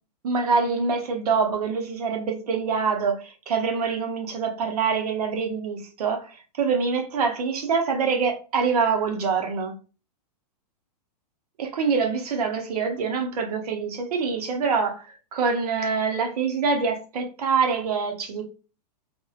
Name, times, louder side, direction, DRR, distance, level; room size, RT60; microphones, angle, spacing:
voice 1, 0.2-9.7 11.6-15.1 15.3-18.4, right 5 dB, 65° right, 0.6 m, -25 dB
2.5 x 2.1 x 2.4 m
supercardioid pair, 175°, 21 cm